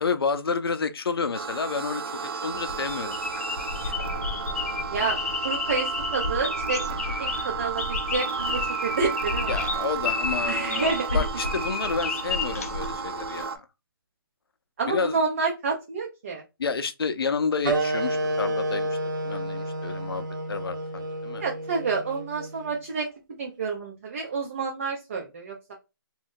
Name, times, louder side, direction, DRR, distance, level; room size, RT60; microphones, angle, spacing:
voice 1, 0.0-3.2 9.5-13.6 14.9-15.2 16.6-18.9 19.2-21.4, left 5 dB, 90° left, 0.5 m, -30 dB
sound 1, 1.3-13.6, right 6 dB, 85° right, 0.5 m, -33 dB
sound 2, 2.5-13.4, left 4 dB, 40° left, 0.4 m, -31 dB
voice 2, 4.9-6.8 7.2-9.6 10.4-11.3 14.8-16.4 21.4-23.1 23.4-25.8, right 4 dB, 35° right, 0.6 m, -29 dB
sound 3, 17.6-22.8, right 1 dB, 55° right, 0.8 m, -30 dB
2.6 x 2.3 x 3.5 m
hypercardioid pair, 170°, 12 cm